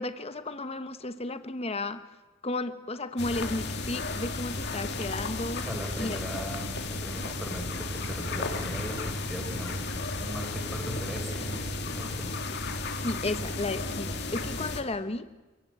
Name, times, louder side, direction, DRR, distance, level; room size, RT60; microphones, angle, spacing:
voice 1, 0.0-2.1 2.4-5.7 6.0-6.2 13.0-15.4, left 2 dB, 30° left, 11 dB, 1.1 m, -33 dB
sound 1, 3.2-14.8, left 2 dB, 55° left, 2.3 m, -34 dB
voice 2, 5.6-9.9 10.2-12.3, equal, ahead, 3 dB, 4.6 m, -39 dB
27.5 x 18.0 x 8.8 m, 1.2 s
head